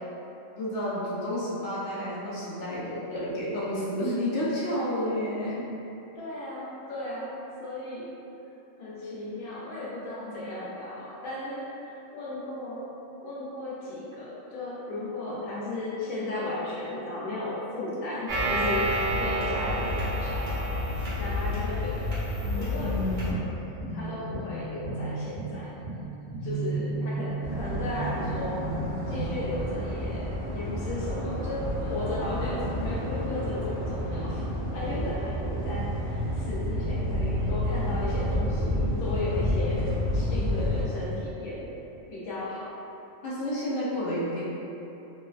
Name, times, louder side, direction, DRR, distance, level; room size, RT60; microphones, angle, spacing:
voice 1, 0.6-5.7 10.2-10.4 34.9-35.1 43.2-44.4, equal, 70° left, -8 dB, 0.8 m, -30 dB
voice 2, 6.2-8.1 8.8-12.9 13.2-20.8 21.2-22.2 22.5-23.5 23.9-25.8 26.4-28.7 29.1-34.4 34.7-41.7 42.1-42.7, left 2 dB, 90° left, -8 dB, 1.1 m, -35 dB
sound 1, 18.3-23.3, equal, 50° right, 0.7 m, -29 dB
sound 2, 22.4-29.3, right 2 dB, 70° right, 1.0 m, -34 dB
sound 3, 27.4-40.8, equal, 20° right, 0.9 m, -30 dB
3.2 x 2.1 x 2.4 m, 3.0 s
omnidirectional pair, 1.4 m